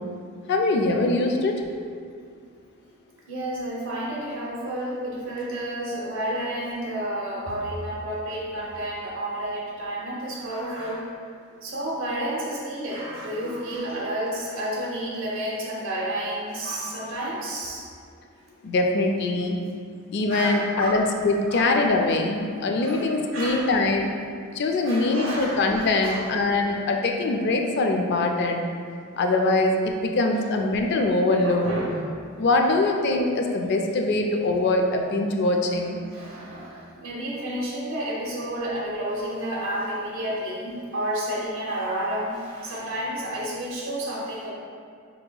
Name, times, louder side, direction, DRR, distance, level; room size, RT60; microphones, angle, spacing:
voice 1, 0.5-1.6 18.6-19.6 20.1-24.1 24.5-28.6 29.2-31.7 32.4-36.0, left 2 dB, 55° left, 3 dB, 0.3 m, -23 dB
voice 2, 3.3-11.1 11.6-17.9 20.3-21.0 21.5-21.8 22.8-23.7 24.8-26.3 30.4-30.5 30.9-31.1 31.4-32.0 34.6-34.7 36.0-44.5, right 1 dB, 65° right, -5 dB, 0.8 m, -31 dB
5.4 x 2.8 x 2.2 m, 2.2 s
head